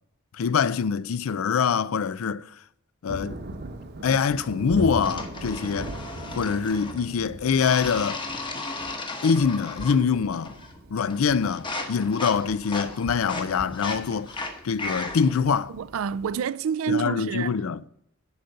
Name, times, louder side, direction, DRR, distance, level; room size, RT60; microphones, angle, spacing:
voice 1, 0.3-2.5 3.0-3.4 4.0-5.9 6.4-8.2 9.2-10.6 10.9-14.4 14.6-15.7 16.9-17.8, left 6 dB, 75° left, 0.4 m, -24 dB
Thunder, 3.1-16.4, right 1 dB, 50° right, 0.9 m, -40 dB
sound 1, 5.0-7.1 7.6-10.1 10.3-10.8 11.1-15.4, left 2 dB, 25° left, 1.0 m, -35 dB
voice 2, 15.7-17.6, right 7 dB, 70° right, 0.4 m, -28 dB
10.5 x 4.0 x 6.7 m
head